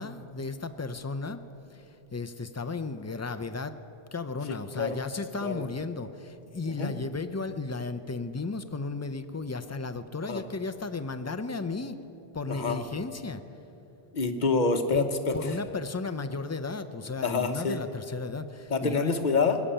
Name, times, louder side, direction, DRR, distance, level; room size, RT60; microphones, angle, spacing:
voice 1, 0.0-1.4 1.7-1.8 2.1-3.7 4.1-12.0 12.3-13.4 14.9-15.1 15.3-19.1, left 3 dB, 25° left, 8 dB, 0.4 m, -34 dB
voice 2, 4.5-5.0 5.4-5.6 6.6-6.9 10.3-10.4 12.5-12.8 14.1-15.6 17.2-17.8 18.7-19.6, left 4 dB, 45° left, 7 dB, 1.1 m, -27 dB
19.5 x 7.3 x 9.9 m, 2.9 s
omnidirectional pair, 1.1 m